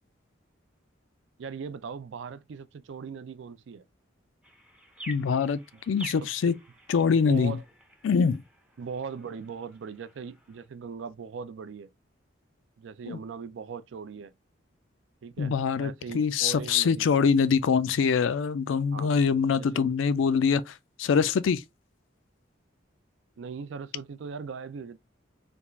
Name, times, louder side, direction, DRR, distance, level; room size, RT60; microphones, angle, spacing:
voice 1, 1.4-3.8 7.1-7.6 8.8-11.9 12.8-14.3 15.2-17.1 18.9-19.1 19.5-19.9 23.4-25.0, right 5 dB, 70° right, 0.4 m, -39 dB
sound 1, 4.4-10.7, right 1 dB, 5° right, 0.5 m, -48 dB
voice 2, 5.1-6.6 6.9-7.6 8.0-8.4 13.1-13.2 15.4-21.6, left 6 dB, 75° left, 0.4 m, -24 dB
3.4 x 2.4 x 3.0 m
head